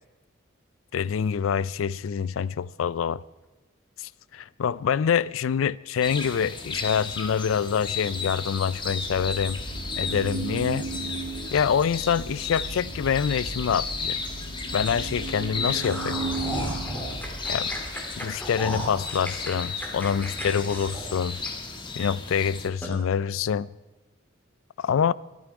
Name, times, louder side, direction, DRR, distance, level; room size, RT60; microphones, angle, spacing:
voice 1, 0.9-3.2 4.0-9.6 10.0-10.9 11.5-14.2 14.7-16.2 17.5-17.7 18.2-21.4 22.0-23.7 24.8-25.1, left 7 dB, 90° left, 0.4 m, -26 dB
sound 1, 6.0-22.7, left 4 dB, 25° left, 1.4 m, -35 dB
sound 2, 9.0-18.0, right 3 dB, 70° right, 1.2 m, -36 dB
sound 3, 15.6-21.9 22.3-22.4 22.8-23.0, equal, 10° left, 2.6 m, -35 dB
23.5 x 9.3 x 4.9 m
head